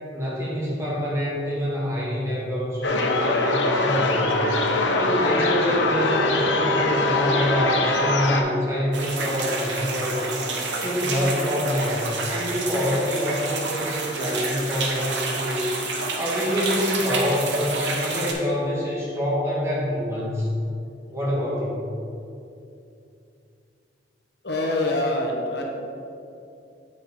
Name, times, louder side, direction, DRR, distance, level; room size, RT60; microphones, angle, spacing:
voice 1, 0.0-4.4 5.0-10.2 10.7-15.7 16.2-20.5 21.1-21.9, equal, 15° right, -6 dB, 1.7 m, -26 dB
sound 1, 2.8-8.4, left 2 dB, 85° left, 0.7 m, -22 dB
sound 2, 8.9-18.3, right 3 dB, 85° right, 1.1 m, -29 dB
voice 2, 24.4-25.6, left 2 dB, 65° left, 0 dB, 1.1 m, -25 dB
8.2 x 5.2 x 4.3 m, 2.6 s
head